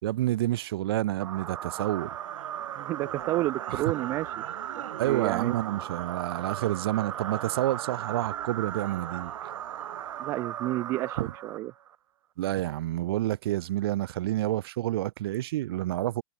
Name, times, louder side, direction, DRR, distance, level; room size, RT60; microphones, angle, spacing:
voice 1, 0.0-2.1 3.7-3.8 5.0-9.3 11.2-11.3 12.4-16.2, right 15 dB, 45° right, 3.7 m, -29 dB
sound 1, 1.2-11.9, right 10 dB, 70° right, 1.8 m, -37 dB
voice 2, 2.8-4.4 5.0-5.5 10.2-11.2 11.4-11.7, right 17 dB, 15° right, 0.6 m, -30 dB
supercardioid pair, 175°, 17 cm